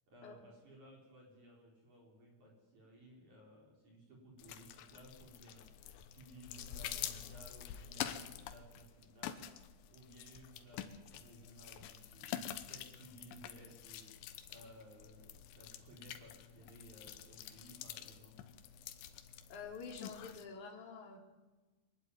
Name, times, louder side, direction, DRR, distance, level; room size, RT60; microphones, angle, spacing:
voice 1, 0.1-5.7 6.1-9.4 9.9-14.1 14.5-18.4, right 1 dB, 45° right, -1 dB, 4.9 m, -58 dB
sound 1, 4.4-20.4, left 10 dB, 80° left, 3.3 m, -47 dB
voice 2, 19.5-21.2, left 5 dB, 45° left, 0 dB, 4.3 m, -48 dB
24.0 x 12.0 x 9.6 m, 1.2 s
omnidirectional pair, 5.3 m